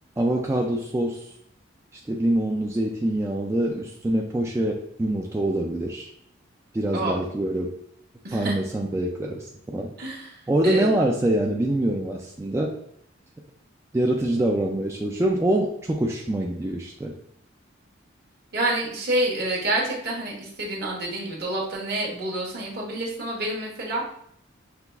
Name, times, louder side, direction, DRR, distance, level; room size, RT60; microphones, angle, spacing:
voice 1, 0.2-1.3 1.9-6.1 6.7-7.7 8.3-9.9 10.5-12.8 13.9-17.1, right 1 dB, 15° right, 0 dB, 0.3 m, -25 dB
voice 2, 8.2-8.5 10.0-10.3 10.6-10.9 18.5-24.1, right 1 dB, 55° right, -3 dB, 1.2 m, -28 dB
5.9 x 2.3 x 3.4 m, 0.70 s
head